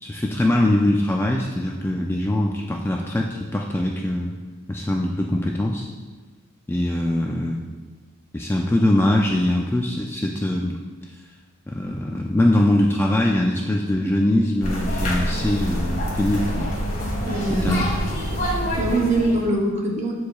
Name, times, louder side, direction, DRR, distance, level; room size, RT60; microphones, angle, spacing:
voice 1, 0.0-4.3 4.7-5.9 6.7-7.7 8.3-10.8 11.7-16.7 17.5-17.8, left 1 dB, 10° left, 0 dB, 0.3 m, -22 dB
sound 1, 14.6-19.5, equal, 40° left, 1.8 m, -26 dB
voice 2, 17.2-17.7 18.8-20.1, right 2 dB, 35° right, -1 dB, 1.0 m, -22 dB
13.5 x 4.8 x 2.3 m, 1.4 s
head